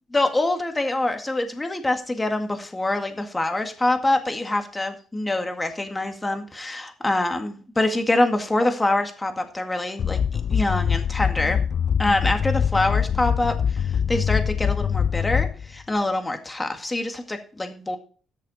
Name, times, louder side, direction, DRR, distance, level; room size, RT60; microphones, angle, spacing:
voice 1, 0.1-11.6 12.0-13.5 14.1-18.0, left 2 dB, 20° left, 5 dB, 2.0 m, -25 dB
sound 1, 10.0-15.8, left 7 dB, 55° left, 0.4 m, -23 dB
13.5 x 6.6 x 4.2 m, 0.41 s
cardioid pair, 90°, 0 cm